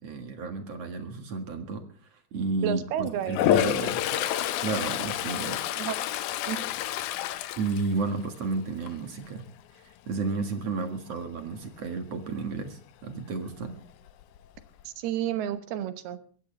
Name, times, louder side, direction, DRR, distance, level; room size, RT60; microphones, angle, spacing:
voice 1, 0.0-1.8 2.1-4.0 4.6-5.7 7.6-9.4 9.7-13.7, right 3 dB, 50° right, 6 dB, 2.2 m, -32 dB
voice 2, 2.6-4.5 5.8-6.0 6.5-6.7 14.8-16.2, right 10 dB, 80° right, 10 dB, 3.1 m, -32 dB
Toilet flush, 3.3-8.5 8.9-9.2 13.7-13.8 14.1-14.8, left 12 dB, 85° left, 1.7 m, -28 dB
22.0 x 16.0 x 3.3 m, 0.43 s
omnidirectional pair, 4.5 m